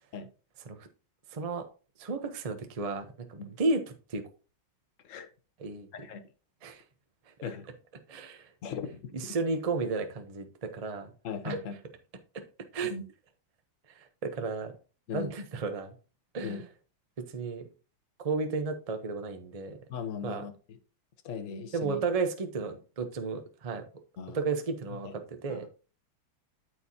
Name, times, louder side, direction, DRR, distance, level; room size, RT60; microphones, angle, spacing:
voice 1, 1.3-1.7 2.0-3.8 4.1-4.2 5.6-5.9 6.6-6.8 8.1-8.5 9.1-11.1 11.4-11.6 12.7-12.9 13.9-14.7 15.1-15.9 16.3-16.7 17.2-17.7 18.2-19.8 20.2-20.4 21.7-23.8 24.3-25.7, right 4 dB, 60° right, 6 dB, 0.3 m, -33 dB
voice 2, 8.6-9.4 11.2-11.8 12.8-13.0 15.1-15.3 16.4-16.6 19.9-20.8 21.2-22.0 24.2-24.4 25.0-25.1 25.5-25.7, left 6 dB, 50° left, 7 dB, 1.1 m, -38 dB
13.0 x 4.6 x 2.8 m, 0.36 s
omnidirectional pair, 2.3 m